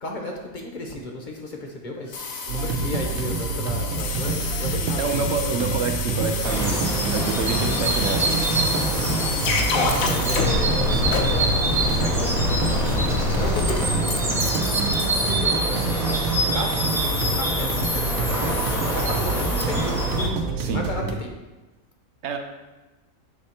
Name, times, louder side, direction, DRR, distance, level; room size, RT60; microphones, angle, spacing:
voice 1, 0.0-5.0 9.6-12.5 13.3-14.5 15.2-21.3, left 1 dB, 45° left, 1 dB, 0.8 m, -34 dB
sound 1, 2.1-19.6, left 4 dB, 80° left, 1.2 m, -29 dB
sound 2, 2.5-21.1, right 4 dB, 90° right, 1.1 m, -28 dB
voice 2, 5.0-8.6 20.6-20.9 22.2-22.4, right 5 dB, 65° right, 6 dB, 0.8 m, -28 dB
sound 3, 6.4-20.3, right 1 dB, ahead, 0.6 m, -26 dB
7.1 x 3.3 x 4.3 m, 1.1 s
omnidirectional pair, 1.4 m